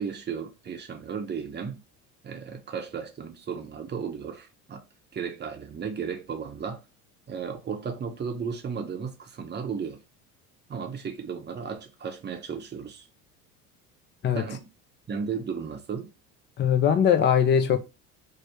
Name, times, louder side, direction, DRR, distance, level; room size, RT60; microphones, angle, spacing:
voice 1, 0.0-1.8 2.2-4.8 5.1-6.8 7.3-10.0 10.7-13.1 14.4-14.7 15.1-16.1, right 6 dB, 25° right, 0.7 m, -34 dB
voice 2, 16.6-17.8, left 8 dB, 25° left, 0.5 m, -21 dB
3.0 x 2.0 x 3.3 m
hypercardioid pair, 70°, 44 cm